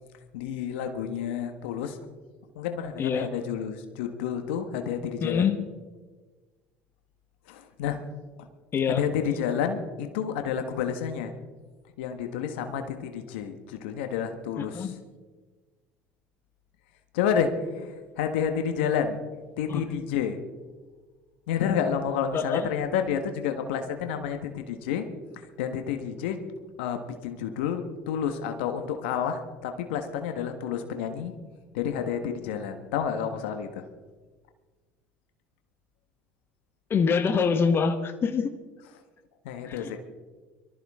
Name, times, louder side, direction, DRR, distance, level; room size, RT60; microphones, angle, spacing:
voice 1, 0.3-2.0 2.5-5.5 7.5-8.0 8.4-8.5 9.0-11.3 12.0-15.0 17.1-19.2 19.6-20.4 21.5-25.1 25.3-26.4 26.8-31.3 31.7-33.9 39.4-40.0, left 8 dB, 80° left, 7 dB, 1.4 m, -30 dB
voice 2, 5.2-5.6 8.7-9.0 14.7-15.0 19.7-19.9 22.3-22.7 36.9-38.5 39.7-40.0, left 6 dB, 40° left, 8 dB, 1.4 m, -25 dB
23.5 x 14.0 x 3.7 m, 1.3 s
hypercardioid pair, 75°, 6 cm